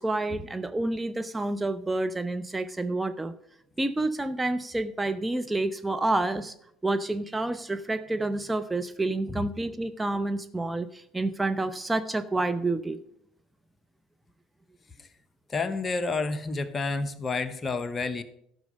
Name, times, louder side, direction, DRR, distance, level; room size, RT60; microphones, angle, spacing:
voice 1, 0.0-3.3 3.8-6.5 6.8-13.0, right 2 dB, 15° right, 9 dB, 0.6 m, -29 dB
voice 2, 15.5-18.2, left 3 dB, 30° left, 11 dB, 1.0 m, -30 dB
13.5 x 6.1 x 5.4 m, 0.72 s
hypercardioid pair, 60°, 0 cm